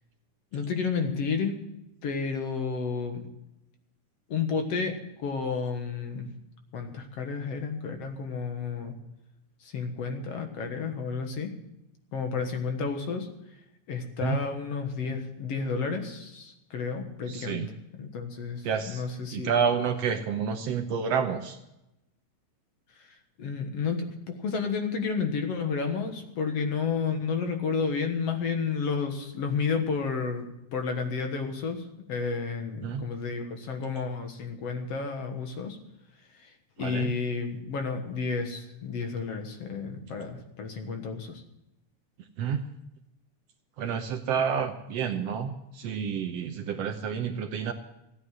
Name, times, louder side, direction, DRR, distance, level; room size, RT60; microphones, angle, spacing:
voice 1, 0.5-1.6 2.0-3.2 4.3-6.3 6.7-8.9 9.6-11.5 12.1-13.3 13.9-17.7 18.0-19.5 23.0-30.4 30.7-35.8 36.3-41.4, left 5 dB, 60° left, 5 dB, 2.4 m, -31 dB
voice 2, 17.3-17.7 18.6-19.0 19.3-21.6 32.8-33.0 36.8-37.1 42.4-42.6 43.8-47.7, right 7 dB, 70° right, 7 dB, 1.8 m, -29 dB
15.5 x 9.8 x 7.3 m, 0.88 s
omnidirectional pair, 3.4 m